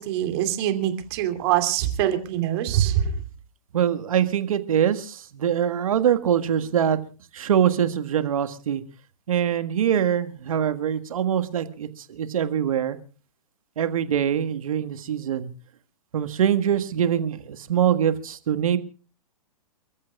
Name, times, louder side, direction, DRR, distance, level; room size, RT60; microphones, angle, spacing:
voice 1, 0.0-3.1, right 11 dB, 40° right, 8 dB, 2.7 m, -24 dB
voice 2, 3.7-7.0 7.3-8.8 9.3-11.9 12.1-13.0 13.8-15.5 16.1-18.8, right 9 dB, 60° right, 9 dB, 1.7 m, -23 dB
29.5 x 14.0 x 2.4 m, 0.38 s
figure-of-eight pair, 120°, 20 cm